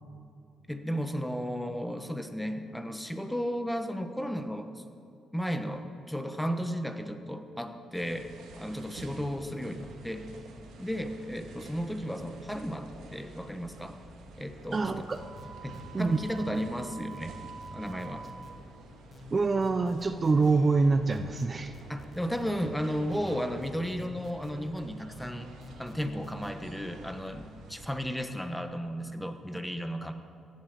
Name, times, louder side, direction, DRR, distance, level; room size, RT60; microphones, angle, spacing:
voice 1, 0.7-4.8 5.3-8.3 8.6-10.3 10.8-14.0 14.4-15.1 15.6-17.4 17.7-18.3 21.9-25.5 25.8-30.1, equal, 5° left, 8 dB, 1.1 m, -34 dB
sound 1, 7.9-27.9, right 2 dB, 85° right, 2.0 m, -49 dB
voice 2, 14.7-15.2 15.9-16.2 19.3-21.7, right 3 dB, 30° right, 9 dB, 0.6 m, -25 dB
sound 2, 15.1-16.7 17.1-18.6 19.1-20.5 21.1-22.7 23.1-24.6 25.1-26.5, left 2 dB, 35° left, 1.6 m, -50 dB
Wind instrument woodwind instrument, 15.2-18.7, right 6 dB, 65° right, 2.0 m, -47 dB
16.0 x 8.6 x 7.6 m, 2.5 s
cardioid pair, 90°, 0 cm